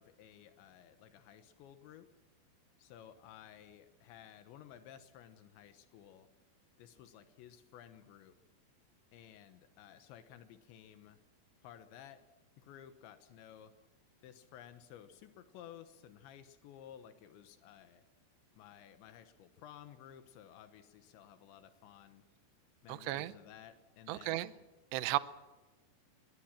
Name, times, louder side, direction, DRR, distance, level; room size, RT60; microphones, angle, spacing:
voice 1, 0.0-2.2 2.8-6.3 6.8-8.4 9.1-11.2 11.6-12.3 12.6-13.8 14.2-18.0 18.6-22.2 22.8-24.4, left 10 dB, 80° left, 10 dB, 3.4 m, -55 dB
voice 2, 22.9-23.3 24.1-24.5 24.9-25.2, right 17 dB, 80° right, 15 dB, 2.8 m, -34 dB
21.5 x 19.5 x 7.4 m, 1.2 s
omnidirectional pair, 5.1 m